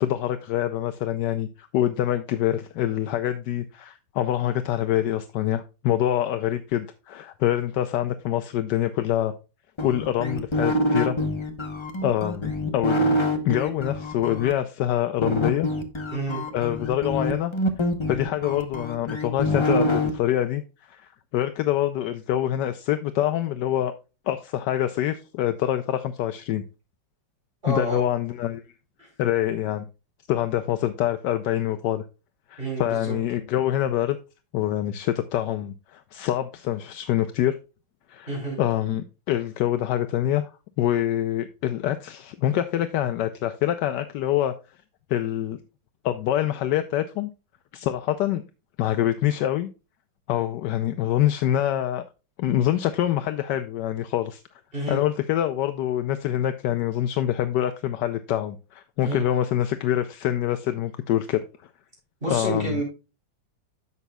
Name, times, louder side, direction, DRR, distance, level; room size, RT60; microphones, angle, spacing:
voice 1, 0.0-9.3 9.8-11.2 12.0-13.2 13.4-15.7 16.5-17.5 18.1-20.6 20.9-23.9 24.3-26.6 27.7-28.6 29.2-29.8 30.3-32.0 32.5-34.2 34.5-37.6 38.1-38.3 38.6-40.5 40.8-44.5 45.1-45.6 46.0-47.3 47.7-48.4 48.8-49.7 50.3-52.0 52.4-54.4 54.9-61.4 62.3-62.8, left 12 dB, 75° left, 1.1 m, -25 dB
sound 1, 9.8-14.5 15.2-20.1, left 1 dB, 30° left, 0.5 m, -26 dB
voice 2, 16.1-16.4 27.6-28.0 29.0-29.1 32.6-33.2 38.3-38.6 54.7-55.0 59.0-59.2 62.2-62.8, right 1 dB, 30° right, 4.5 m, -29 dB
11.0 x 7.2 x 2.2 m
omnidirectional pair, 2.0 m